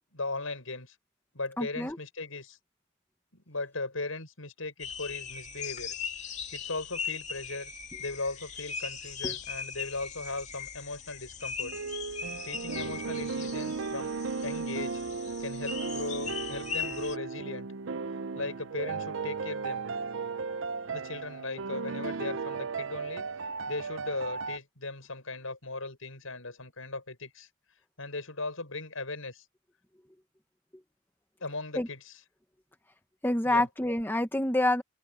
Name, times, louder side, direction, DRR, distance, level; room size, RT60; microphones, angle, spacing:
voice 1, 0.1-1.0 1.3-2.6 3.3-5.9 6.5-7.7 8.0-11.7 12.4-14.1 14.4-15.0 15.4-17.7 18.3-19.9 20.8-23.2 23.7-27.5 28.0-29.4 31.4-32.2 33.4-33.7, left 3 dB, 85° left, 7.1 m, -38 dB
voice 2, 1.6-2.0 9.2-9.3 31.8-31.9 33.2-34.8, left 1 dB, 10° left, 1.2 m, -27 dB
sound 1, 4.8-17.2, left 6 dB, 35° left, 2.7 m, -39 dB
sound 2, 11.6-24.6, right 4 dB, 70° right, 0.6 m, -35 dB
head